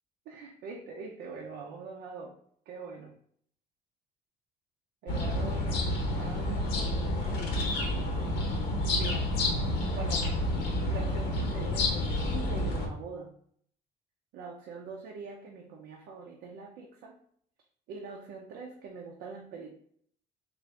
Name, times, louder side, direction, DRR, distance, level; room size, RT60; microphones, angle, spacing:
voice 1, 0.3-2.4 2.7-3.1 5.0-5.9 6.1-7.7 9.0-9.4 9.9-10.5 10.9-13.3 14.3-17.2 17.9-19.7, right 4 dB, 85° right, 0 dB, 0.6 m, -43 dB
sound 1, 5.1-12.9, left 1 dB, 90° left, 0.8 m, -29 dB
3.8 x 2.6 x 3.2 m, 0.63 s
cardioid pair, 110°, 17 cm